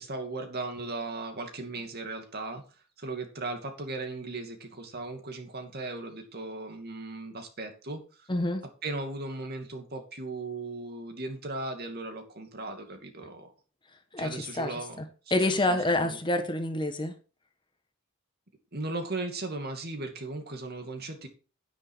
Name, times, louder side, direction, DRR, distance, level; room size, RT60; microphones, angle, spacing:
voice 1, 0.0-2.6 3.0-8.3 8.8-13.5 14.2-15.0 15.4-16.2 18.7-21.3, right 2 dB, 50° right, 2.5 m, -37 dB
voice 2, 8.3-8.6 14.1-15.0 15.3-17.1, left 2 dB, 25° left, 1.2 m, -28 dB
9.8 x 9.8 x 4.6 m
head